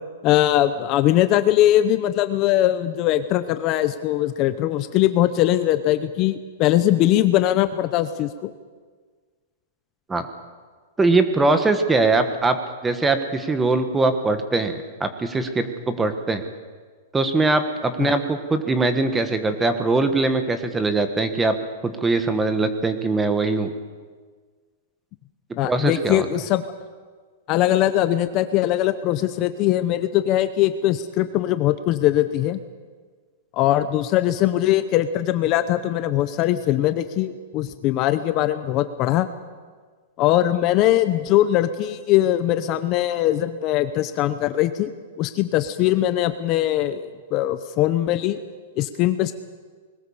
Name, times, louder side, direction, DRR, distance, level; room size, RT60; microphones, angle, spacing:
voice 1, 0.2-8.5 18.0-18.1 25.6-26.7 27.5-32.6 33.5-39.3 40.2-44.9 45.2-48.4 48.8-49.3, left 13 dB, 30° left, 11 dB, 0.8 m, -21 dB
voice 2, 11.0-16.4 17.1-21.6 21.8-23.7 25.6-26.2, right 3 dB, 10° right, 8 dB, 1.3 m, -21 dB
21.0 x 19.0 x 7.2 m, 1.5 s
supercardioid pair, 165°, 0 cm